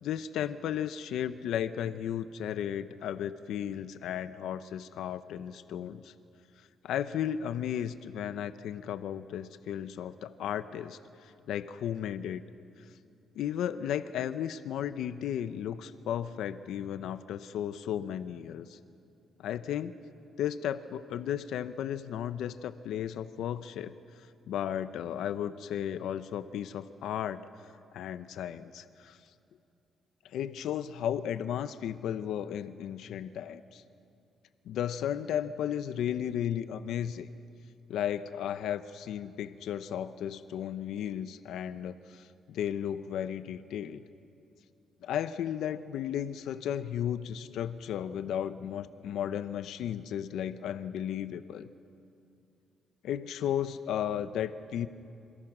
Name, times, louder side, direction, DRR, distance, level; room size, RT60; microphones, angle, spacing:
voice 1, 0.0-6.1 6.8-12.4 13.3-18.8 19.4-19.9 20.4-23.9 24.5-27.4 27.9-29.2 30.2-33.8 34.7-37.3 37.9-44.0 45.0-51.7 53.0-54.9, left 10 dB, 90° left, 12 dB, 0.7 m, -34 dB
27.5 x 26.5 x 6.1 m, 2.5 s
cardioid pair, 160°, 0 cm